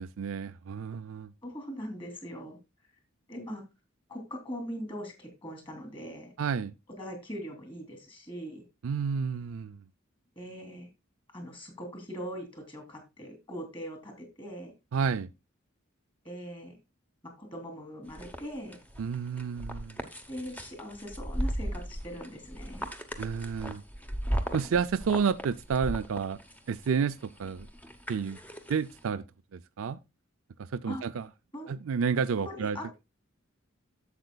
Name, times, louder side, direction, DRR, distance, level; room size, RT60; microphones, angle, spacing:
voice 1, 0.0-1.3 6.4-6.7 8.8-9.8 14.9-15.3 19.0-20.0 23.2-23.8 24.5-26.4 26.7-27.7 28.1-28.4 28.7-29.2 29.5-30.0 30.7-31.3 31.7-32.8, right 6 dB, 75° right, 0.4 m, -30 dB
voice 2, 1.4-2.6 3.3-3.6 4.1-6.3 7.0-8.6 10.4-10.9 11.3-14.7 16.2-16.7 17.2-18.8 20.3-22.9 30.9-31.0 31.5-31.7 32.4-32.9, equal, 25° left, 3.0 m, -41 dB
sound 1, 18.1-29.0, equal, 10° left, 0.9 m, -37 dB
12.0 x 7.6 x 2.3 m
head